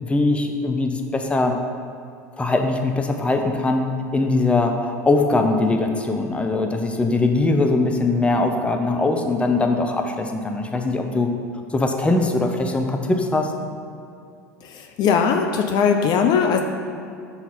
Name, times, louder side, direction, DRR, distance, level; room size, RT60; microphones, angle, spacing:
voice 1, 0.0-1.5 2.4-3.8 4.1-11.3 11.7-13.5, left 2 dB, 15° left, 4 dB, 0.7 m, -21 dB
voice 2, 15.0-16.6, left 6 dB, 50° left, 4 dB, 0.6 m, -19 dB
6.0 x 4.0 x 5.7 m, 2.5 s
hypercardioid pair, 75°, 9 cm